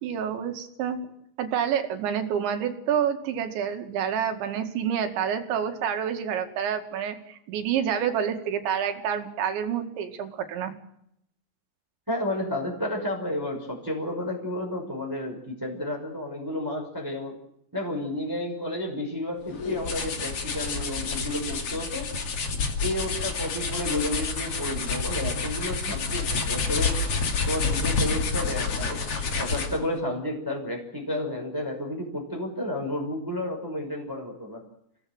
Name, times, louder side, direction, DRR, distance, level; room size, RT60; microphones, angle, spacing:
voice 1, 0.0-1.0 1.4-10.7, right 8 dB, 80° right, 6 dB, 4.4 m, -28 dB
voice 2, 12.1-17.4 17.7-22.1 22.8-27.0 27.5-34.6, left 1 dB, 5° right, 0 dB, 4.9 m, -31 dB
sound 1, 19.5-29.9, left 4 dB, 40° left, 2.7 m, -28 dB
29.0 x 17.5 x 7.9 m, 0.75 s
omnidirectional pair, 5.2 m